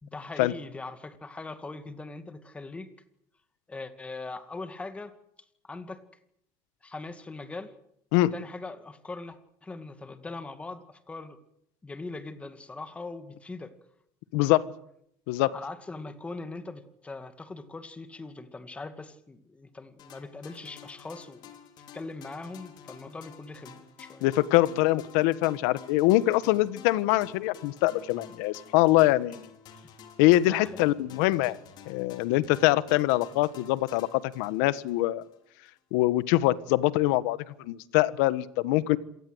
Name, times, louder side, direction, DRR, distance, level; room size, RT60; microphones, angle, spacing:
voice 1, 0.0-2.9 3.7-5.1 5.6-6.0 6.8-7.7 8.3-11.4 11.8-13.7 15.5-21.5 21.9-24.3 30.4-30.8, left 3 dB, 10° left, 10 dB, 2.2 m, -41 dB
voice 2, 14.3-14.6 15.3-15.5 24.2-29.5 30.2-31.6 31.9-35.2 35.9-39.0, left 17 dB, 80° left, 16 dB, 1.4 m, -24 dB
sound 1, 20.0-35.4, left 7 dB, 50° left, 4.2 m, -51 dB
27.0 x 19.5 x 8.0 m, 0.72 s
cardioid pair, 150°, 10 cm